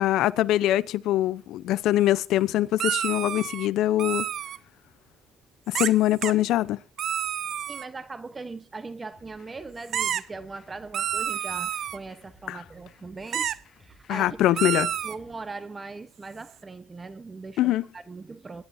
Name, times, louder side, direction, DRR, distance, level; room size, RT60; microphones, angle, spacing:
voice 1, 0.0-4.3 5.7-6.8 12.5-12.6 14.1-14.9 17.6-17.8, left 14 dB, 90° left, 0.6 m, -23 dB
sound 1, 2.8-3.7 4.0-4.6 5.7-5.9 6.2-6.3 7.0-7.9 9.9-10.2 10.9-12.0 13.3-13.6 14.6-15.2, right 9 dB, 70° right, 0.8 m, -29 dB
voice 2, 7.7-14.4 14.7-18.6, right 3 dB, 30° right, 1.0 m, -40 dB
sound 2, 9.1-15.3, left 2 dB, 50° left, 7.1 m, -57 dB
25.5 x 10.5 x 2.7 m
cardioid pair, 90°, 0 cm